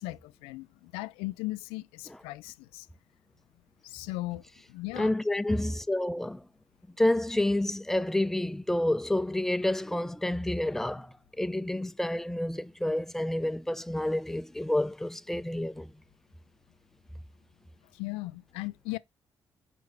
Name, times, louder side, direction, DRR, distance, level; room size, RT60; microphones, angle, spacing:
voice 1, 0.0-2.9 3.8-5.1 17.9-19.0, left 20 dB, 90° left, 0.4 m, -37 dB
voice 2, 5.0-6.4 7.0-15.9, left 1 dB, 5° left, 0.5 m, -29 dB
5.3 x 4.7 x 4.8 m
supercardioid pair, 55°, 9 cm